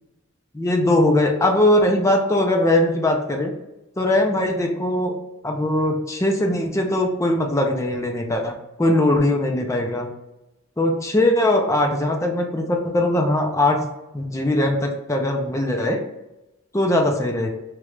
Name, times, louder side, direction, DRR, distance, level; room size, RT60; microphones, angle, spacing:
voice 1, 0.5-3.5 4.0-5.2 5.4-10.1 10.8-13.8 14.1-16.0 16.7-17.5, left 1 dB, 15° left, 2 dB, 0.4 m, -20 dB
3.0 x 2.4 x 3.1 m, 0.95 s
head